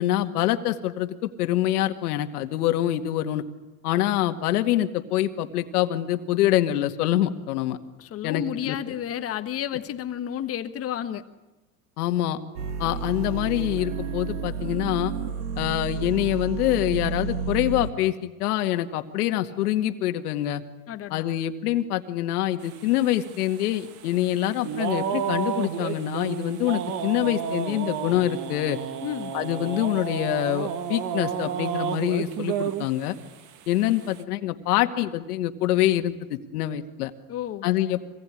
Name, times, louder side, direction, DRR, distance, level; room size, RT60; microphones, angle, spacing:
voice 1, 0.0-3.4 3.8-7.8 8.2-8.8 12.0-12.4 12.8-15.1 15.6-20.6 21.1-28.8 29.3-33.2 33.7-37.1 37.6-38.2, left 13 dB, 75° left, 7 dB, 2.2 m, -25 dB
voice 2, 8.0-11.3 20.9-21.3 29.0-29.3 37.3-37.7, left 10 dB, 30° left, 9 dB, 1.4 m, -31 dB
sound 1, 12.6-17.9, right 5 dB, 85° right, 2.5 m, -31 dB
sound 2, 22.6-33.2 33.6-34.2, right 8 dB, 40° right, 1.9 m, -31 dB
25.0 x 19.5 x 10.0 m, 1.1 s
supercardioid pair, 140°, 46 cm